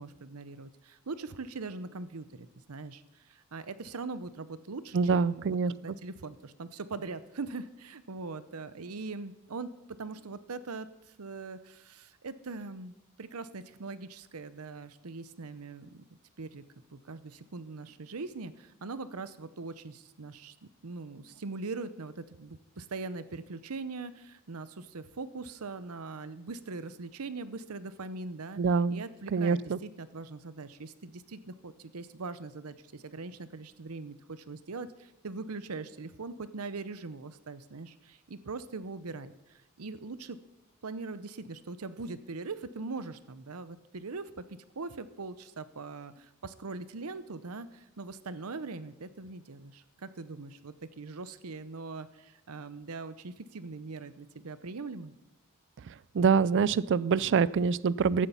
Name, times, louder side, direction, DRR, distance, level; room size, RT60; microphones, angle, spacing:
voice 1, 0.0-5.4 5.7-9.7 10.0-10.9 11.2-16.0 16.4-16.6 16.9-20.5 20.8-28.6 28.9-40.4 40.8-55.1, right 3 dB, 90° right, 14 dB, 0.8 m, -41 dB
voice 2, 4.9-5.7 28.6-29.0 29.3-29.8 56.1-58.3, right 5 dB, 55° right, 20 dB, 0.4 m, -25 dB
15.0 x 11.0 x 5.6 m, 0.97 s
head